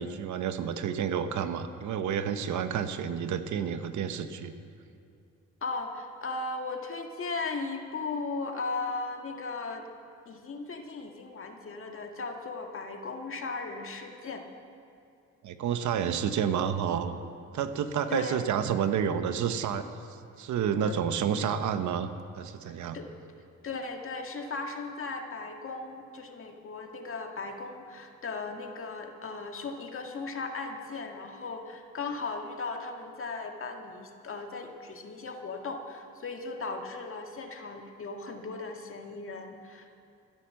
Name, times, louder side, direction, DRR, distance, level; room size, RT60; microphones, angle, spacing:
voice 1, 0.0-4.5 15.4-17.1 17.5-19.9 20.4-22.1 22.4-23.0, right 8 dB, 75° right, 9 dB, 1.0 m, -29 dB
voice 2, 5.6-9.9 10.3-14.4 18.1-18.5 20.8-21.0 22.7-23.1 23.6-40.0, left 3 dB, 45° left, 4 dB, 1.8 m, -37 dB
15.5 x 10.5 x 7.6 m, 2.5 s
cardioid pair, 90°, 30 cm